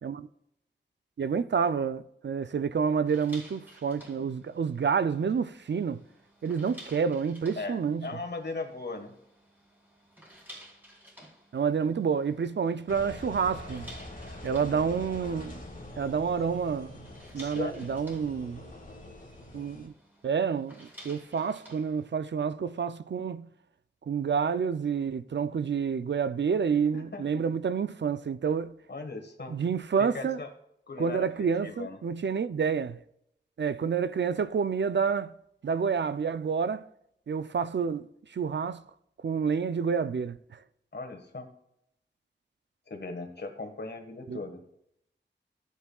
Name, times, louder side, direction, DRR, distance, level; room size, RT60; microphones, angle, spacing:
voice 1, 1.2-6.0 6.4-8.1 11.5-13.9 14.4-15.6 16.0-16.9 17.3-18.6 19.5-19.9 20.2-23.5 24.1-28.7 29.5-30.4 31.0-33.0 33.6-35.3 35.6-36.8 37.3-38.1 38.3-38.8 39.2-40.4 44.3-44.4, right 6 dB, 65° right, 0.4 m, -29 dB
sound 1, 3.1-22.1, equal, 10° right, 3.0 m, -54 dB
voice 2, 7.6-9.1 17.3-17.9 26.9-27.4 28.9-29.6 30.0-30.5 30.9-32.0 40.9-41.5 42.9-44.6, left 3 dB, 60° left, 1.5 m, -38 dB
Engine, 12.9-19.9, left 1 dB, 45° left, 1.9 m, -44 dB
14.5 x 8.4 x 2.3 m
wide cardioid pair, 75°, 19 cm